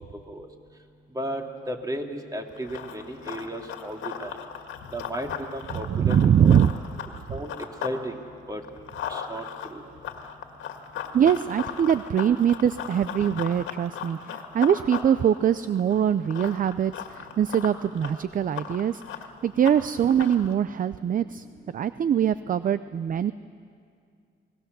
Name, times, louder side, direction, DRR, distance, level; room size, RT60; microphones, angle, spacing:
voice 1, 1.1-4.4 4.9-6.6 7.3-7.5 7.8-8.2 8.5-8.6 9.1-9.4 9.7-9.8, right 1 dB, 20° right, 2 dB, 2.8 m, -34 dB
Run, 2.5-8.0 8.3-20.5, left 8 dB, 80° left, 2.0 m, -38 dB
voice 2, 5.9-6.7 11.1-19.0 19.4-21.5 21.7-23.3, right 9 dB, 45° right, 14 dB, 0.5 m, -23 dB
29.5 x 20.0 x 6.9 m, 2.3 s
cardioid pair, 90°, 20 cm